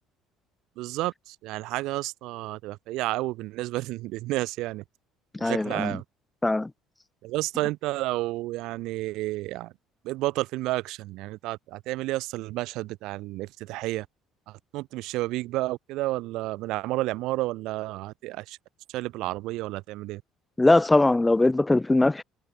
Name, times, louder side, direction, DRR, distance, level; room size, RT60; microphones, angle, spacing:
voice 1, 0.8-4.8 5.4-6.0 7.2-9.7 10.0-14.1 14.7-18.6 18.9-20.2, right 18 dB, 65° right, 2.2 m, -31 dB
voice 2, 5.4-5.9 6.4-6.7 20.6-22.2, left 2 dB, 10° left, 0.7 m, -21 dB
cardioid pair, 160°, 0 cm